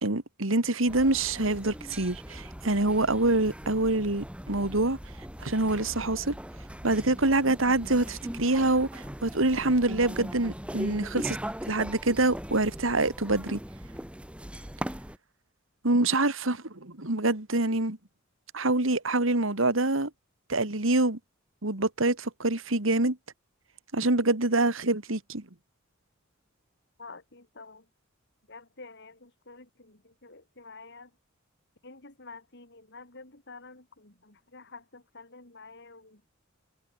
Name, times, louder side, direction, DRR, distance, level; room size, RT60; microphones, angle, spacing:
voice 1, 0.0-5.0 5.4-6.4 6.8-11.4 11.7-13.6 15.8-18.0 18.5-20.1 20.5-21.2 21.6-23.2 23.9-25.4, right 2 dB, 75° right, 2.5 m, -26 dB
sound 1, 0.9-15.2, equal, 5° right, 3.0 m, -40 dB
voice 2, 27.0-27.8 28.5-31.1 31.8-36.3, left 3 dB, 60° left, 4.9 m, -49 dB
head